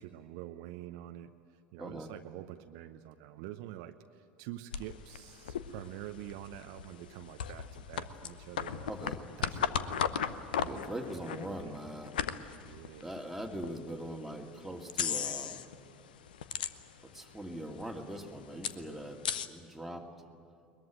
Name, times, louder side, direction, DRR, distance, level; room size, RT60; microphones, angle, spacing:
voice 1, 0.0-1.3 1.7-8.9 9.4-10.1 10.6-11.8 12.6-13.1, right 13 dB, 55° right, 8 dB, 0.8 m, -47 dB
voice 2, 1.8-2.1 8.9-9.2 10.6-12.2 13.0-15.6 17.0-20.3, equal, 5° right, 1 dB, 2.3 m, -42 dB
sound 1, 4.7-13.8 14.3-14.4 14.9-15.8 16.1-17.2 17.5-17.6 17.7-19.5, left 8 dB, 70° left, 0.8 m, -36 dB
21.5 x 21.5 x 9.1 m, 2.6 s
figure-of-eight pair, 70°, 5 cm